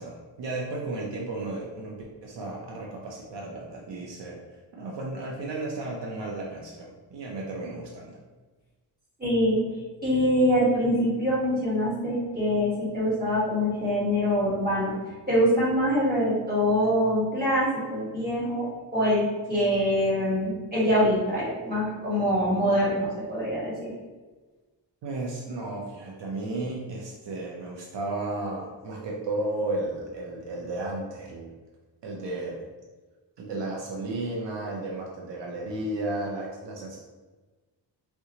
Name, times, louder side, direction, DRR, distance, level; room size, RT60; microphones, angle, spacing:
voice 1, 0.0-4.4 4.8-8.2 25.0-31.5 32.0-32.6 33.4-37.0, right 2 dB, 75° right, -2 dB, 0.6 m, -33 dB
voice 2, 9.2-9.6 10.0-14.9 15.3-18.7 18.9-23.9, equal, 20° right, -9 dB, 1.5 m, -24 dB
3.7 x 2.2 x 2.9 m, 1.3 s
wide cardioid pair, 125°, 43 cm